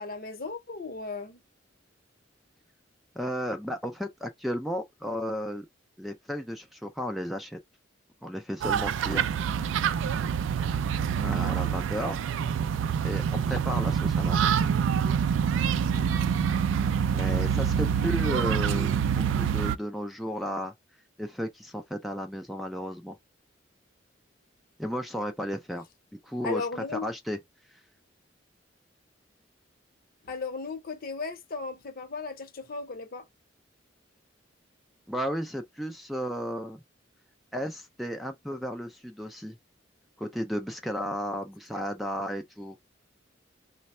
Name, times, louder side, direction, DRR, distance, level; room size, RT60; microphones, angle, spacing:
voice 1, 0.0-1.4 26.4-27.0 30.2-33.2 41.8-41.9, left 4 dB, 50° left, 0.7 m, -36 dB
voice 2, 3.2-5.7 6.0-7.6 8.2-9.3 11.2-12.2 13.0-14.6 17.1-20.7 21.2-23.2 24.8-25.9 26.1-26.7 27.0-27.4 35.1-36.8 37.5-39.6 40.2-42.8, equal, ahead, 0.3 m, -33 dB
sound 1, 8.6-19.8, right 7 dB, 80° right, 0.3 m, -26 dB
3.3 x 2.1 x 4.1 m
head